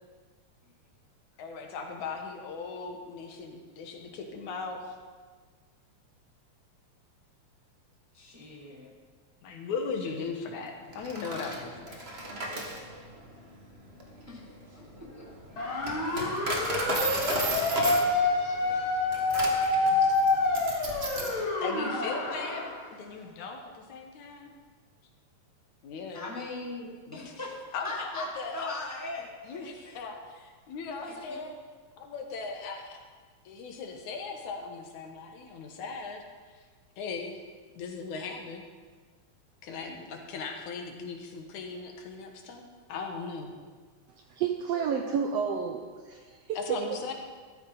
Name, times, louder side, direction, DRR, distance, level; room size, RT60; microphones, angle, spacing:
voice 1, 1.4-5.0 9.4-12.0 21.6-24.6 25.8-26.3 27.1-28.7 29.4-31.6 32.0-33.0 33.5-36.2 36.5-36.6 37.0-37.4 37.8-38.6 39.6-42.6 42.9-43.5 46.6-47.1, left 4 dB, 75° left, 3 dB, 2.6 m, -38 dB
voice 2, 8.1-8.9 14.3-14.4 14.7-15.3 15.7-15.8 16.1-16.2 20.2-20.6 26.1-27.6 27.8-30.0 31.0-31.4, left 2 dB, 10° right, -3 dB, 1.1 m, -40 dB
Coin (dropping), 10.9-21.4, right 2 dB, 35° right, 1.1 m, -35 dB
sound 1, 15.6-22.8, left 2 dB, 45° left, 2.6 m, -27 dB
voice 3, 44.3-47.0, right 7 dB, 80° right, 3 dB, 1.5 m, -31 dB
13.5 x 13.0 x 4.0 m, 1.5 s
omnidirectional pair, 3.6 m